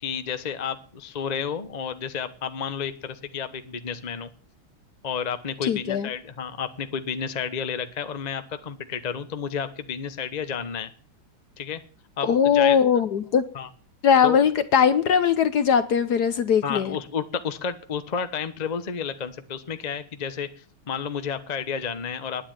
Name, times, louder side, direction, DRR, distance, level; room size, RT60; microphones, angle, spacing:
voice 1, 0.0-4.3 5.0-10.9 11.6-11.8 12.2-12.8 13.5-13.7 14.2-14.4 16.6-20.5 20.9-22.5, left 7 dB, 35° left, 9 dB, 0.7 m, -31 dB
voice 2, 5.7-6.1 12.2-13.4 14.0-17.0, left 7 dB, 60° left, 12 dB, 1.1 m, -20 dB
10.0 x 9.8 x 8.9 m, 0.43 s
omnidirectional pair, 2.3 m